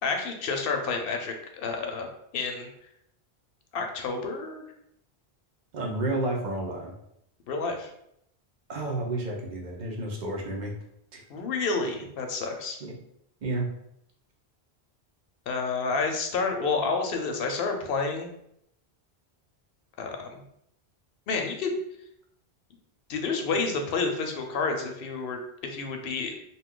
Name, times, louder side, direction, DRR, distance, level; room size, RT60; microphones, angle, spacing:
voice 1, 0.0-2.1 2.3-2.7 3.7-4.6 7.5-7.9 11.3-12.8 15.5-18.3 20.0-20.4 21.3-21.8 23.1-26.3, left 4 dB, 65° left, 4 dB, 0.7 m, -29 dB
voice 2, 5.7-6.9 8.7-10.7 11.1-11.2 12.8-12.9 13.4-13.7, right 2 dB, 50° right, 0 dB, 0.7 m, -31 dB
2.7 x 2.3 x 3.6 m, 0.76 s
omnidirectional pair, 1.1 m